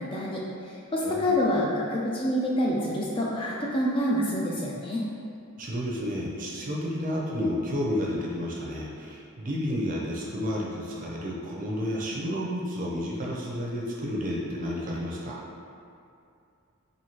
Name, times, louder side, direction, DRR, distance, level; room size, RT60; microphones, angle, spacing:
voice 1, 0.0-5.0, left 1 dB, 25° left, -3 dB, 0.3 m, -27 dB
voice 2, 5.6-15.4, equal, 35° right, -4 dB, 0.5 m, -31 dB
4.3 x 2.6 x 2.8 m, 2.5 s
head